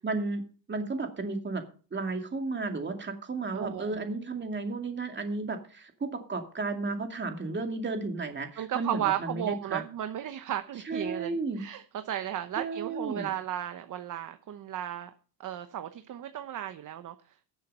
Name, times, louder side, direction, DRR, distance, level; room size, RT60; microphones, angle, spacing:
voice 1, 0.0-1.6 1.9-9.8 10.9-11.6 12.6-13.3, right 3 dB, 25° right, 5 dB, 2.3 m, -33 dB
voice 2, 3.5-4.0 8.6-15.1 15.4-17.5, right 11 dB, 45° right, 9 dB, 1.0 m, -34 dB
13.5 x 7.5 x 5.4 m, 0.40 s
cardioid pair, 125°, 45 cm